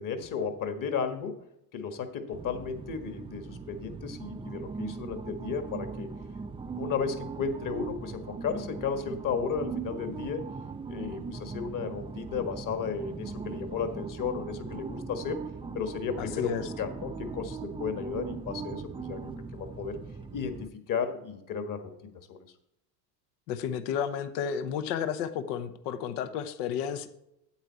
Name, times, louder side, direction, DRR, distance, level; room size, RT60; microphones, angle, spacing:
voice 1, 0.0-1.4 1.7-6.1 6.8-10.4 10.9-15.4 15.7-20.0 20.3-22.4, left 6 dB, 40° left, 8 dB, 1.6 m, -34 dB
sound 1, 2.3-20.7, right 4 dB, 10° right, 0.4 m, -39 dB
voice 2, 16.2-16.7 23.5-27.1, left 8 dB, 70° left, 11 dB, 1.1 m, -32 dB
8.9 x 8.2 x 4.2 m, 0.83 s
hypercardioid pair, 80°, 49 cm